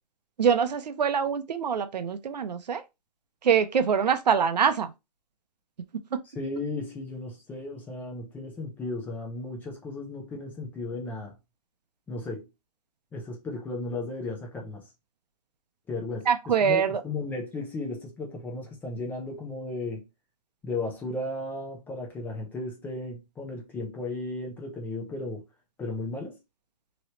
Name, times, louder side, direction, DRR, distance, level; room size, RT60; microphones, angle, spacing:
voice 1, 0.4-2.8 3.4-4.9 6.1-6.2 16.3-17.0, right 7 dB, 90° right, 0.7 m, -24 dB
voice 2, 6.3-11.3 12.1-12.5 13.1-14.9 15.9-20.1 20.6-25.4 25.8-26.4, left 2 dB, 10° left, 0.6 m, -35 dB
3.0 x 3.0 x 2.9 m
hypercardioid pair, 155°, 21 cm